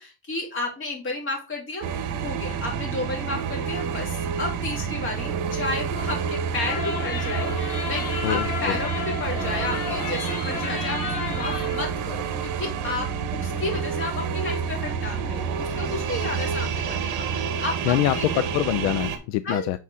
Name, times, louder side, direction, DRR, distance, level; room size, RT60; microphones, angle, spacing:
voice 1, 0.0-1.9 2.2-18.4 19.4-19.7, left 2 dB, 25° left, 2.5 m, -32 dB
sound 1, 1.8-19.2, right 6 dB, 40° right, 1.1 m, -29 dB
sound 2, 6.5-11.9, left 5 dB, 55° left, 1.7 m, -32 dB
voice 2, 8.2-8.8 17.9-19.8, left 14 dB, 75° left, 0.6 m, -24 dB
6.4 x 4.2 x 3.6 m
cardioid pair, 165°, 45 cm